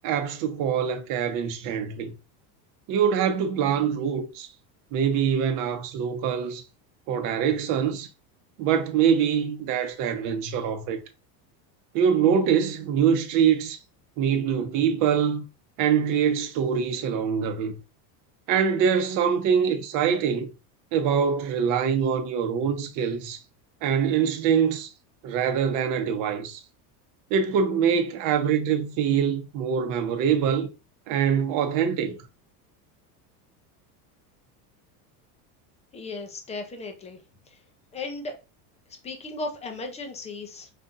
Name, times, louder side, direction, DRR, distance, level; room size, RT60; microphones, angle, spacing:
voice 1, 0.0-2.1 2.9-4.5 4.9-6.6 7.1-8.1 8.6-11.0 11.9-13.8 14.2-15.4 15.8-17.7 18.5-20.5 20.9-23.4 23.8-24.9 25.2-26.6 27.3-30.7 31.1-32.2, right 7 dB, 40° right, 0.9 m, -24 dB
voice 2, 35.9-37.2 37.9-38.3 39.0-40.7, left 3 dB, 15° left, 0.5 m, -35 dB
5.0 x 4.1 x 2.5 m
supercardioid pair, 155°, 47 cm